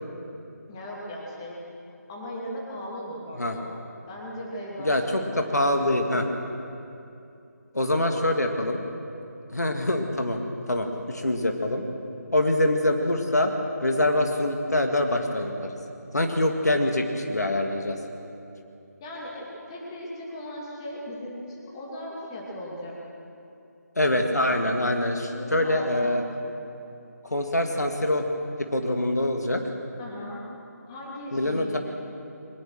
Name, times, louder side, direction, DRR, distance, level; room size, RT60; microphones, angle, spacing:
voice 1, 0.7-1.6 2.1-3.7 4.1-5.0 5.3-6.3 8.0-8.2 19.0-23.0 24.1-24.3 25.3-26.2 30.0-30.4 30.9-31.8, left 1 dB, 15° left, -4 dB, 2.6 m, -38 dB
voice 2, 4.8-6.2 7.7-8.8 9.5-10.4 10.7-11.8 12.3-13.5 13.8-15.7 16.1-18.0 24.0-26.2 27.2-28.3 28.6-29.6 31.3-31.8, left 1 dB, 70° left, 4 dB, 2.1 m, -24 dB
22.5 x 20.0 x 6.4 m, 2.7 s
figure-of-eight pair, 160°, 9 cm